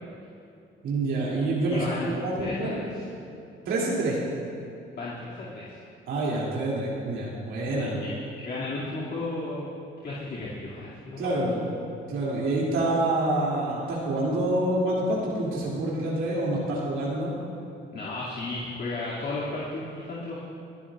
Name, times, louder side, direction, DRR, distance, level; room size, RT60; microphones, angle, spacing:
voice 1, 0.8-2.9 3.6-4.2 6.1-7.9 11.2-11.7 12.1-17.3, right 2 dB, 85° right, -6 dB, 2.9 m, -27 dB
voice 2, 1.7-3.1 5.0-5.8 7.7-8.1 8.4-9.7 10.0-11.4 17.9-20.4, left 2 dB, 60° left, -9 dB, 2.5 m, -34 dB
23.5 x 11.5 x 2.5 m, 2.5 s
cardioid pair, 90°, 20 cm